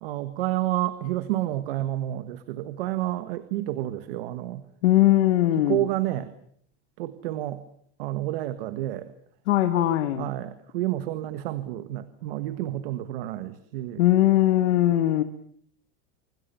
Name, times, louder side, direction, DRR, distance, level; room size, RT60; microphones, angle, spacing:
voice 1, 0.0-4.6 5.6-6.3 7.0-7.6 8.0-9.1 10.2-14.0, right 15 dB, 55° right, 12 dB, 1.6 m, -30 dB
voice 2, 4.8-5.8 9.5-10.3 14.0-15.2, left 14 dB, 85° left, 10 dB, 1.8 m, -20 dB
26.0 x 25.0 x 7.0 m, 0.62 s
supercardioid pair, 180°, 33 cm